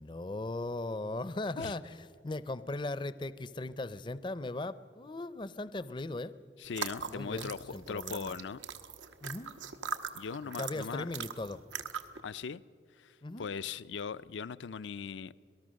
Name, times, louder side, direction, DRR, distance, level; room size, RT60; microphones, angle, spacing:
voice 1, 0.0-6.4 7.1-8.4 9.2-9.6 10.6-11.6 13.2-13.5, left 2 dB, 25° left, 0.5 m, -38 dB
voice 2, 6.6-8.6 10.1-11.1 12.2-12.6 13.0-15.3, left 6 dB, 80° left, 0.5 m, -39 dB
sound 1, 6.7-12.2, right 6 dB, 90° right, 1.2 m, -41 dB
26.5 x 18.5 x 6.4 m
head